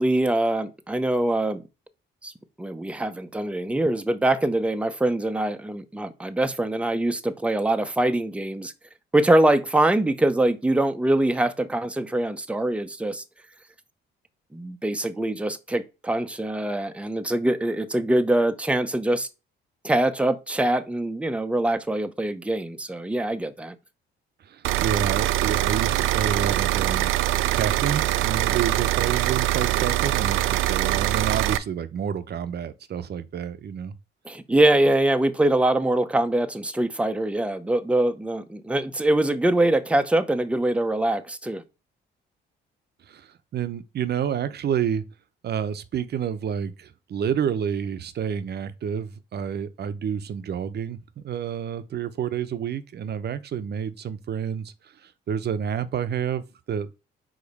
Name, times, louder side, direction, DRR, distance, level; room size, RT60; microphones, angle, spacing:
voice 1, 0.0-1.6 2.2-2.3 2.6-8.7 9.1-13.2 14.5-19.3 19.8-23.7 34.2-41.6, right 1 dB, 5° right, 0.7 m, -23 dB
voice 2, 24.4-27.2 27.5-33.9 43.1-45.0 45.4-54.7 55.0-56.9, right 8 dB, 55° right, 0.8 m, -29 dB
sound 1, 24.6-31.6, right 15 dB, 90° right, 0.5 m, -23 dB
5.0 x 3.9 x 5.3 m
cardioid pair, 90°, 20 cm